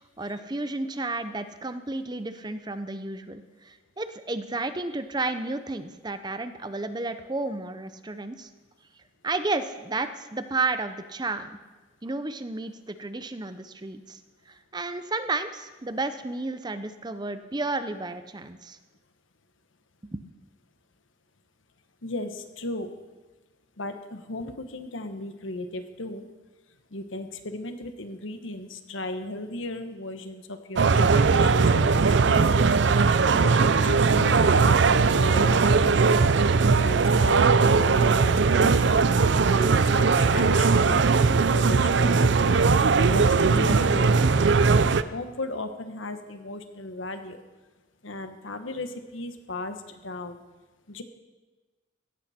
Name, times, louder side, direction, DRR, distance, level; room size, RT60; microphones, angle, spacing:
voice 1, 0.2-8.5 9.2-11.6 12.0-14.2 14.5-18.8 20.0-20.2, right 3 dB, 20° right, 10 dB, 0.6 m, -32 dB
voice 2, 22.0-22.9 23.8-26.2 26.9-32.7 33.3-36.2 36.7-47.4 48.0-50.4 50.9-51.0, left 2 dB, 80° left, 8 dB, 1.3 m, -36 dB
sound 1, 30.8-45.0, right 4 dB, 60° right, 0.5 m, -20 dB
16.5 x 14.0 x 4.3 m, 1.2 s
head